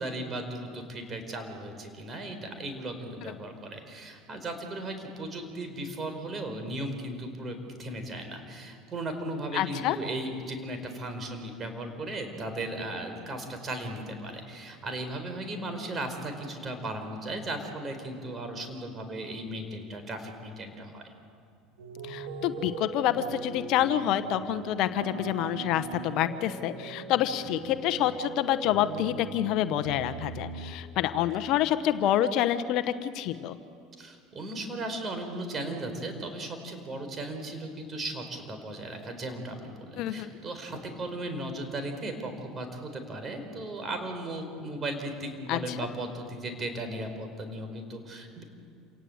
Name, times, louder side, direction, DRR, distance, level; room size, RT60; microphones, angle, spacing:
voice 1, 0.0-21.1 34.0-48.4, right 1 dB, 35° right, 6 dB, 4.8 m, -36 dB
voice 2, 9.5-10.0 22.0-33.6 40.0-40.3 45.5-45.8, left 12 dB, 60° left, 11 dB, 1.0 m, -27 dB
sound 1, 21.8-30.7, right 5 dB, 75° right, 2.8 m, -40 dB
27.5 x 18.5 x 8.0 m, 2.3 s
hypercardioid pair, 85°, 0 cm